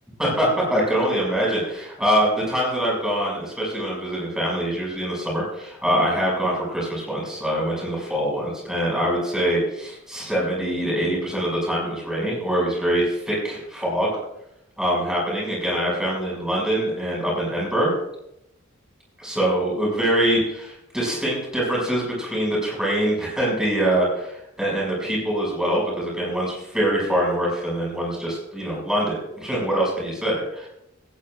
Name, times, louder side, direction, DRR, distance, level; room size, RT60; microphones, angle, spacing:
voice 1, 0.2-14.1 14.8-17.9 19.2-30.7, right 1 dB, 5° right, -4 dB, 6.2 m, -24 dB
17.5 x 14.5 x 2.5 m, 0.82 s
head